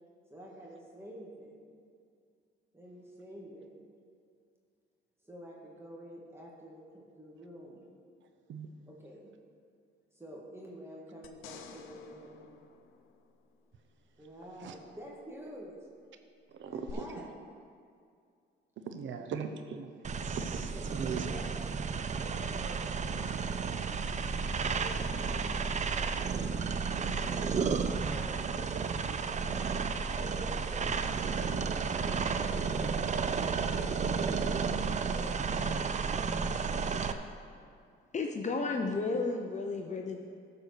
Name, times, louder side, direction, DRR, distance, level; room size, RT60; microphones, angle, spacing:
voice 1, 0.3-1.8 2.7-3.9 5.2-7.8 8.9-9.3 10.1-12.5 14.2-15.8 16.7-17.2 20.7-20.8 21.2-21.7 22.2-22.8 23.5-24.2 24.8-25.0 25.2-26.2 26.9-29.2 29.9-31.0 31.6-34.5 35.1-36.1, equal, 10° right, -4 dB, 2.0 m, -49 dB
sound 1, 11.2-13.7 16.9-17.0, left 8 dB, 85° left, 0.8 m, -52 dB
voice 2, 16.5-17.0 18.8-21.3 24.9-25.1 27.2-27.3, right 6 dB, 70° right, 7 dB, 0.9 m, -40 dB
sound 2, 20.0-37.1, right 5 dB, 35° right, 0.6 m, -32 dB
voice 3, 38.1-40.2, left 3 dB, 35° left, 3 dB, 0.7 m, -33 dB
13.0 x 4.8 x 6.6 m, 2.3 s
cardioid pair, 90°, 20 cm